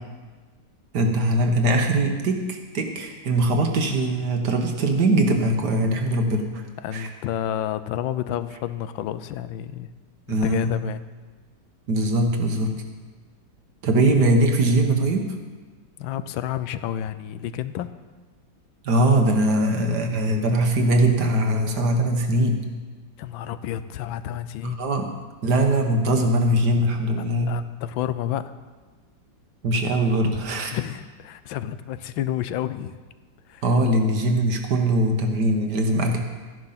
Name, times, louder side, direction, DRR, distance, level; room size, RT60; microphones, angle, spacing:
voice 1, 0.9-6.6 6.9-7.1 10.3-10.8 11.9-12.8 13.8-15.3 18.8-22.6 24.6-25.1 25.4-27.5 29.6-30.8 33.6-36.2, right 1 dB, 60° right, 4 dB, 1.8 m, -21 dB
voice 2, 6.8-9.9 10.3-11.0 16.0-17.9 23.2-24.8 27.5-28.5 30.7-32.9 33.5-33.6, left 11 dB, 85° left, 13 dB, 1.4 m, -30 dB
13.5 x 10.5 x 5.8 m, 1.4 s
omnidirectional pair, 2.1 m